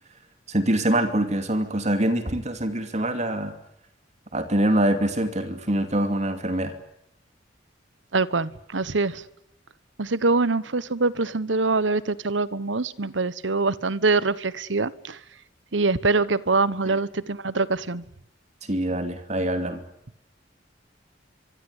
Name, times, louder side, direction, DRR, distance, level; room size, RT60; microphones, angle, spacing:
voice 1, 0.5-3.6 4.3-6.7 16.8-17.0 18.6-19.8, right 1 dB, 40° right, 8 dB, 2.6 m, -24 dB
voice 2, 8.1-9.2 10.0-15.2 15.7-18.0, right 3 dB, 85° right, 17 dB, 1.2 m, -24 dB
25.0 x 24.5 x 8.2 m, 0.77 s
head